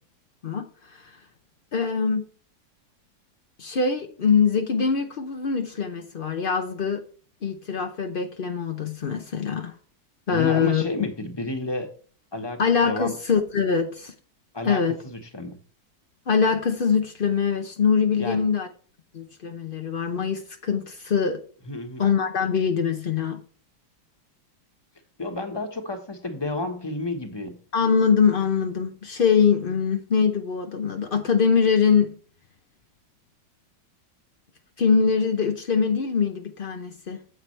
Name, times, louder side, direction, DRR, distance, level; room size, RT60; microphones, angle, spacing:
voice 1, 0.4-1.2 1.7-2.2 3.6-7.0 7.4-9.7 10.3-10.8 12.6-14.1 14.6-15.0 16.3-18.7 19.1-21.4 22.0-23.4 27.7-32.2 34.8-37.2, left 6 dB, 70° left, 0.5 m, -23 dB
voice 2, 10.3-11.9 12.3-13.1 14.5-15.6 18.2-18.4 21.7-22.1 25.2-27.6, left 2 dB, 15° left, 1.1 m, -31 dB
9.4 x 7.6 x 3.3 m
omnidirectional pair, 2.0 m